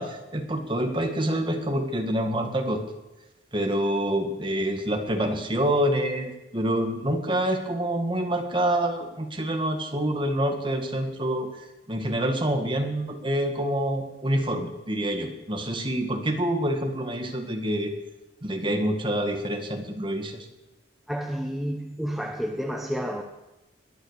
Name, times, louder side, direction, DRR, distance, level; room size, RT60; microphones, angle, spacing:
voice 1, 0.0-2.8 3.5-17.9 18.4-20.5, right 1 dB, 30° right, 1.9 m, -27 dB
voice 2, 21.1-23.2, equal, ahead, 0.9 m, -30 dB
21.0 x 10.5 x 6.7 m
head